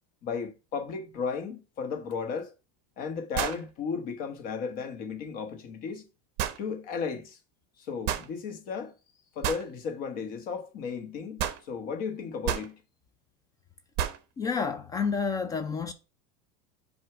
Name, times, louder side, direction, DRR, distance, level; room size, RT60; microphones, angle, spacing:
voice 1, 0.2-2.5 3.0-6.0 6.6-7.4 7.8-8.9 9.3-12.7, left 5 dB, 45° left, 1.2 m, -34 dB
sound 1, 2.1-2.2 3.3-3.7 6.4-6.6 8.1-8.3 9.4-9.7 11.4-11.6 12.4-12.7 14.0-14.2, right 10 dB, 50° right, 0.9 m, -30 dB
voice 2, 14.4-15.9, left 5 dB, 15° left, 0.3 m, -29 dB
7.7 x 2.7 x 5.9 m
supercardioid pair, 155°, 21 cm